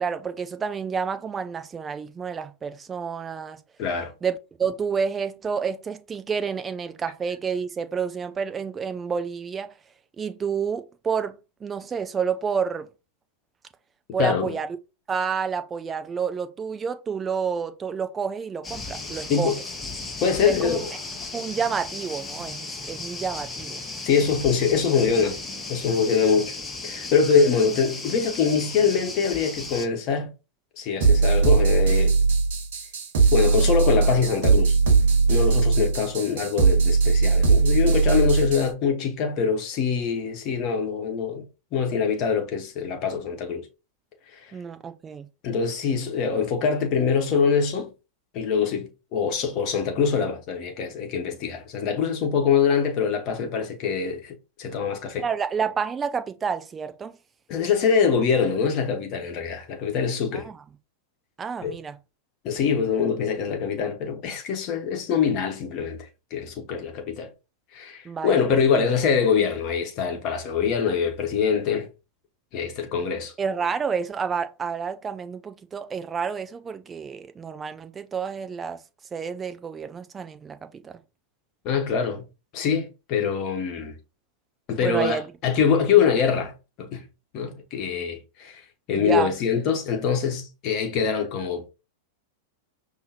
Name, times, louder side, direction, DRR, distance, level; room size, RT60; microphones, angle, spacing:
voice 1, 0.0-3.6 4.2-9.7 10.2-12.9 14.1-14.7 15.1-19.5 20.4-20.8 21.3-23.8 44.5-45.3 55.2-57.1 60.3-60.6 61.4-62.0 68.0-68.4 68.7-68.8 73.4-78.8 79.1-81.0 84.8-85.3 89.0-89.3, right 6 dB, 20° right, 0.5 m, -29 dB
voice 2, 3.8-4.1 14.2-14.6 19.3-19.6 20.2-20.9 24.0-25.4 25.7-26.6 26.8-30.3 30.8-32.1 33.3-34.7 35.3-41.4 41.7-43.6 44.3-44.4 45.4-47.9 48.3-55.2 57.5-60.5 61.6-61.7 62.4-66.0 66.3-67.3 67.7-71.9 72.5-73.3 81.6-82.2 82.5-84.0 84.7-86.5 86.8-87.0 87.3-88.6 88.9-91.7, left 6 dB, 40° left, 1.1 m, -24 dB
sound 1, 18.6-29.9, left 3 dB, 15° left, 1.0 m, -35 dB
sound 2, 31.0-38.7, right 4 dB, 60° right, 1.2 m, -20 dB
5.5 x 3.0 x 2.8 m
figure-of-eight pair, 95°, 0 cm